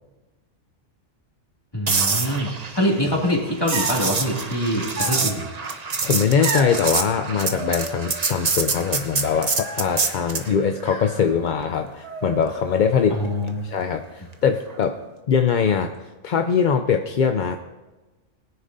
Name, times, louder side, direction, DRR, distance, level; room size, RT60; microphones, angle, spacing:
voice 1, 1.7-5.5 13.1-13.7, equal, 20° left, -2 dB, 2.3 m, -24 dB
sound 1, 1.9-10.5 14.7-14.9, right 4 dB, 35° right, 0.8 m, -26 dB
sound 2, 3.7-4.1 4.9-5.6 6.4-6.8 7.4-8.3 8.6-9.1 9.6-10.1 10.8-11.7 12.0-12.8, right 2 dB, 55° right, 2.3 m, -33 dB
voice 2, 6.0-13.2 13.6-15.0 15.3-15.9 16.2-17.6, left 6 dB, 55° left, 6 dB, 0.5 m, -22 dB
20.5 x 9.9 x 2.6 m, 1.1 s
omnidirectional pair, 1.3 m